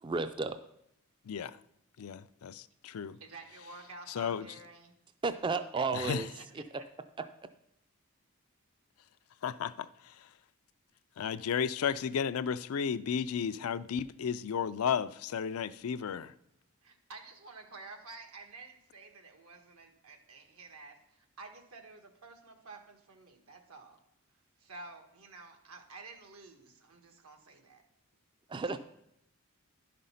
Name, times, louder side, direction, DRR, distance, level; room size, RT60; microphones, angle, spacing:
voice 1, 0.0-0.6 5.2-6.3 28.5-28.8, right 4 dB, 20° right, 0.3 m, -32 dB
voice 2, 1.3-1.6 2.0-3.2 4.1-4.5 5.9-6.3 9.4-10.3 11.2-16.3, left 7 dB, 80° left, 0.4 m, -34 dB
voice 3, 3.2-4.9 5.7-5.8 6.1-6.4 16.8-24.0 24.6-27.8 28.6-28.8, right 3 dB, 85° right, 1.4 m, -51 dB
11.0 x 5.2 x 5.6 m
head